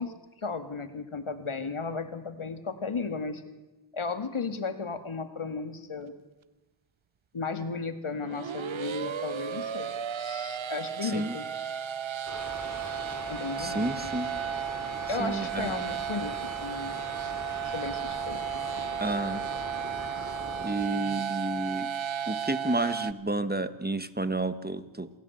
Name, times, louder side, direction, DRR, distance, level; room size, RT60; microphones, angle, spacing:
voice 1, 0.0-3.4 3.9-6.1 7.3-9.9 10.2-11.5 13.3-14.1 15.1-17.0 17.6-18.4 18.8-18.9, left 4 dB, 80° left, 9 dB, 2.0 m, -35 dB
sound 1, 8.1-23.1, right 8 dB, 70° right, 0.8 m, -34 dB
voice 2, 11.0-11.3 13.6-14.3 15.2-15.8 19.0-19.4 20.6-21.9 22.3-25.1, right 2 dB, 20° right, 12 dB, 1.4 m, -31 dB
sound 2, 12.3-20.8, right 1 dB, 35° right, 4.9 m, -40 dB
27.5 x 16.5 x 7.9 m, 1.1 s
wide cardioid pair, 50°, 49 cm